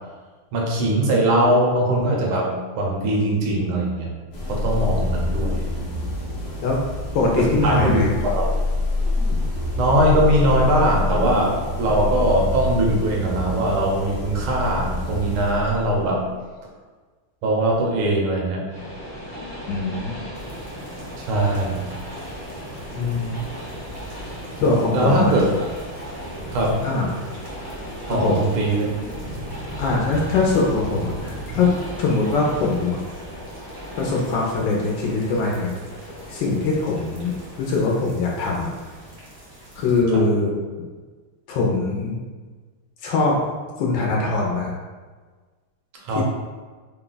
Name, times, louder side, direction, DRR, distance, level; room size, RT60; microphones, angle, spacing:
voice 1, 0.5-2.5 2.8-4.1 4.5-5.7 7.4-8.4 9.8-16.2 17.4-18.6 21.2-21.9 24.9-25.4 26.5-26.8 28.1-28.9 40.1-40.2 46.0-46.2, right 1 dB, 80° right, -2 dB, 1.6 m, -21 dB
sound 1, 4.3-16.2, left 2 dB, 55° left, 0.7 m, -26 dB
voice 2, 7.1-8.1 9.3-9.4 19.7-20.2 23.0-23.3 24.6-25.3 26.8-27.1 28.1-28.4 29.8-31.7 32.0-33.0 34.0-35.7 36.3-38.7 39.7-40.6 41.5-42.2 43.0-43.4 43.8-44.7 46.1-46.2, left 3 dB, 70° left, -2 dB, 1.2 m, -22 dB
Train, 18.7-37.8, equal, 25° right, 0.5 m, -37 dB
sound 2, 20.3-40.0, right 1 dB, 45° right, 0.9 m, -40 dB
3.7 x 2.2 x 3.8 m, 1.4 s
omnidirectional pair, 2.3 m